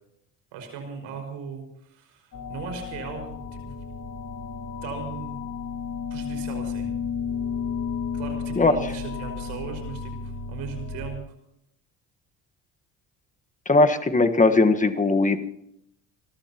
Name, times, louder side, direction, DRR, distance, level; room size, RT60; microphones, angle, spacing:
voice 1, 0.5-3.6 4.8-5.5 6.1-6.9 8.1-11.3, right 6 dB, 85° right, 4 dB, 5.6 m, -38 dB
sound 1, 2.3-11.2, left 6 dB, 45° left, 2.8 m, -33 dB
voice 2, 13.7-15.4, left 3 dB, 15° left, 7 dB, 1.4 m, -19 dB
30.0 x 14.0 x 3.0 m, 0.75 s
cardioid pair, 95°, 45 cm